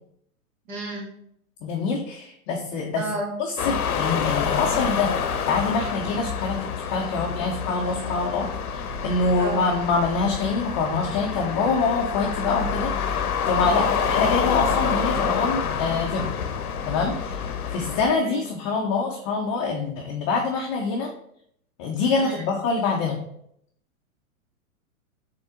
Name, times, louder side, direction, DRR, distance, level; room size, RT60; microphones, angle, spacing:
voice 1, 0.7-1.1 2.9-3.3 9.4-9.7 13.9-14.1 18.2-18.4 22.1-22.5, right 1 dB, 60° right, -1 dB, 1.9 m, -33 dB
voice 2, 1.6-3.0 3.4-5.1 5.5-16.3 16.8-21.1 21.8-23.2, left 4 dB, 25° left, -1 dB, 0.4 m, -25 dB
sound 1, 3.6-18.1, left 6 dB, 80° left, 0.7 m, -27 dB
3.9 x 3.6 x 3.6 m, 0.70 s
hypercardioid pair, 120°, 43 cm